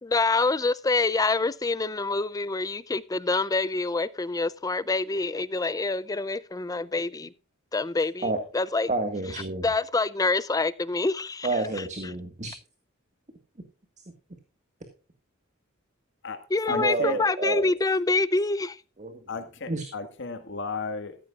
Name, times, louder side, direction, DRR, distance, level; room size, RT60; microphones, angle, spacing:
voice 1, 0.0-7.3 7.7-8.9 9.6-11.6 16.5-18.8, left 3 dB, 15° left, 0.5 m, -26 dB
voice 2, 8.9-9.6 11.4-12.5 16.7-17.7 19.0-19.1 19.7-19.8, right 2 dB, 35° right, 1.7 m, -29 dB
voice 3, 16.7-17.2 19.3-21.2, left 4 dB, 60° left, 1.8 m, -34 dB
14.5 x 14.0 x 2.4 m
head